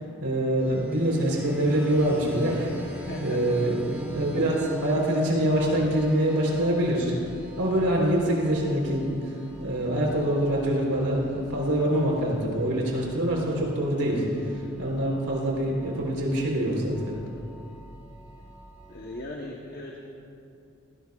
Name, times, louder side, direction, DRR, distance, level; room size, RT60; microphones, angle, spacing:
voice 1, 0.2-2.9 3.2-7.3 7.6-17.0, right 1 dB, 90° right, -2 dB, 3.6 m, -25 dB
sound 1, 0.6-19.2, equal, 10° right, 1.1 m, -42 dB
voice 2, 3.0-3.6 18.9-20.0, left 1 dB, 45° left, -1 dB, 1.0 m, -38 dB
19.0 x 17.0 x 2.4 m, 2.5 s
head